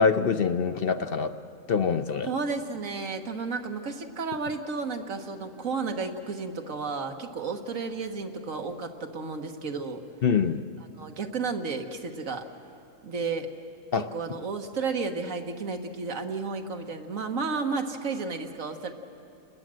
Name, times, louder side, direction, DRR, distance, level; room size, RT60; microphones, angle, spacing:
voice 1, 0.0-1.3 1.7-2.3 10.2-10.6 13.9-14.1, left 5 dB, 55° left, 9 dB, 0.8 m, -24 dB
voice 2, 2.2-10.0 11.0-12.5 13.0-13.5 14.1-18.9, right 4 dB, 85° right, 5 dB, 1.8 m, -32 dB
29.0 x 20.5 x 7.7 m, 2.6 s
omnidirectional pair, 1.3 m